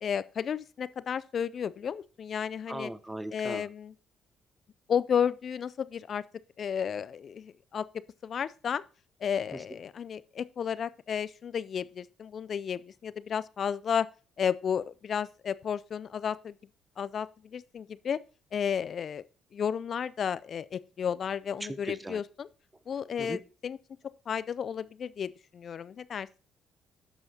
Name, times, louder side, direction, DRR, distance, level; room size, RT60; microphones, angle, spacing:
voice 1, 0.0-2.9 3.3-3.9 4.9-6.2 6.6-7.9 8.2-8.8 9.2-14.1 14.4-16.6 17.0-18.2 18.5-19.2 19.5-22.5 22.9-23.8 24.3-26.4, left 7 dB, 55° left, 0.4 m, -32 dB
voice 2, 2.7-3.7 9.5-9.6 21.9-22.2 23.2-23.4, right 1 dB, 15° right, 0.7 m, -38 dB
14.5 x 5.6 x 2.8 m
hypercardioid pair, 45°, 0 cm